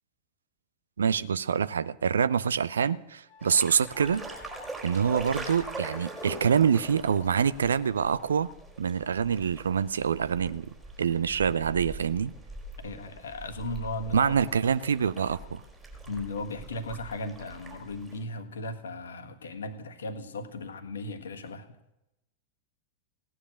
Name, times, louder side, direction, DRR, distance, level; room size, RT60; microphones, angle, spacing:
voice 1, 1.0-4.2 4.8-8.5 8.8-12.3 14.1-15.6, right 7 dB, 70° right, 0.5 m, -26 dB
Wind instrument woodwind instrument, 3.3-7.6, left 6 dB, 35° left, 1.2 m, -52 dB
sound 1, 3.4-18.2, right 2 dB, 15° right, 4.0 m, -43 dB
voice 2, 12.8-14.3 16.1-21.7, left 2 dB, 65° left, 1.5 m, -36 dB
16.5 x 10.0 x 6.5 m
figure-of-eight pair, 90°, 0 cm